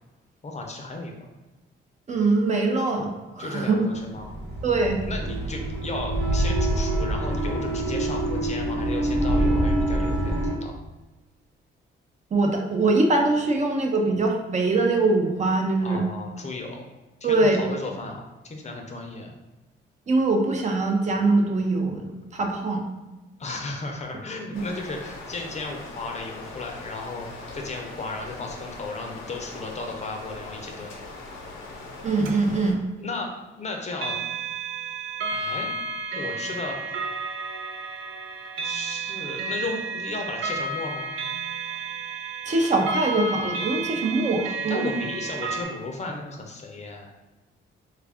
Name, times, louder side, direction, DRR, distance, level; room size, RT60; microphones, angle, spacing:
voice 1, 0.4-1.1 3.4-4.4 5.0-10.7 15.8-16.9 17.2-19.3 23.4-27.3 27.5-30.9 33.0-33.3 33.6-34.2 35.3-35.7 36.2-36.8 38.6-41.1 44.7-47.1, left 3 dB, 35° left, 2 dB, 0.6 m, -35 dB
voice 2, 2.1-3.8 4.6-5.0 12.3-16.1 17.2-17.6 20.1-22.8 32.0-32.8 42.5-45.0, right 3 dB, 35° right, 2 dB, 0.6 m, -23 dB
sound 1, 4.1-10.6, right 1 dB, 60° right, 1.1 m, -25 dB
sound 2, 24.5-32.7, left 2 dB, 90° left, 0.8 m, -40 dB
sound 3, 32.2-32.3 33.9-45.6, right 4 dB, 85° right, 0.6 m, -32 dB
3.3 x 2.4 x 3.4 m, 1.1 s
cardioid pair, 90°, 20 cm